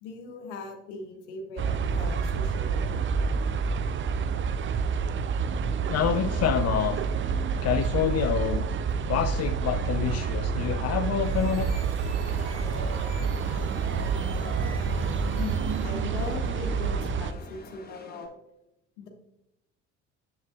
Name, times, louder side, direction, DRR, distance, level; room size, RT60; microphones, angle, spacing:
voice 1, 0.0-1.7 1.9-3.1 12.7-12.8 14.9-15.0 15.4-18.4 19.0-19.1, left 4 dB, 80° left, 3 dB, 1.0 m, -39 dB
sound 1, 1.6-17.3, right 5 dB, 35° right, 0.5 m, -28 dB
voice 2, 5.9-7.0 7.6-8.6 9.1-11.7, left 9 dB, 45° left, 8 dB, 0.5 m, -27 dB
sound 2, 11.1-16.1, right 2 dB, 85° right, 2.1 m, -47 dB
Chatter / Subway metro underground, 12.2-18.3, left 3 dB, 25° left, 1.7 m, -46 dB
7.4 x 7.2 x 2.4 m, 0.86 s
hypercardioid pair, 65°, 35 cm